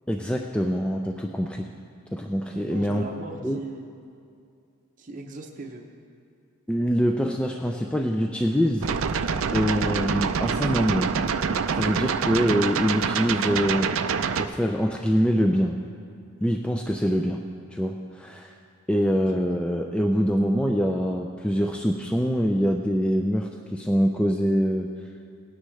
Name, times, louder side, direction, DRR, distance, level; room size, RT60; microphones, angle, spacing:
voice 1, 0.1-1.7 2.1-3.0 3.4-3.6 6.7-8.9 9.5-11.2 11.7-13.9 14.4-15.8 16.4-17.4 17.7-18.5 18.9-24.9, equal, 5° left, 2 dB, 0.3 m, -24 dB
voice 2, 2.5-3.9 5.0-5.8 19.3-19.4, right 2 dB, 35° right, 2 dB, 0.7 m, -38 dB
sound 1, 8.8-14.5, right 6 dB, 70° right, 0.5 m, -26 dB
18.5 x 9.9 x 3.2 m, 2.4 s
head